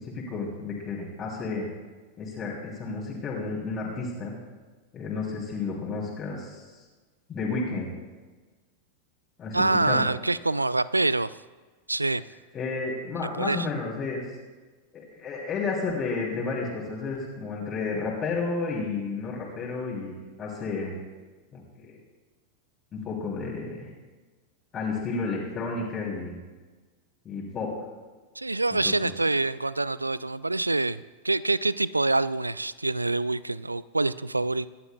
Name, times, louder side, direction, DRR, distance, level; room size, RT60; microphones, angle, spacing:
voice 1, 0.0-1.7 2.2-4.3 4.9-6.8 7.3-7.9 9.4-10.0 12.5-14.2 14.9-20.9 21.5-21.9 22.9-23.9 24.7-26.4 27.2-27.8 28.8-29.1, left 4 dB, 25° left, -4 dB, 3.0 m, -32 dB
voice 2, 9.5-11.3 11.9-12.2 13.2-13.7 28.4-34.7, right 2 dB, 80° right, 18 dB, 0.3 m, -26 dB
26.0 x 11.0 x 2.3 m, 1.3 s
figure-of-eight pair, 90°, 0 cm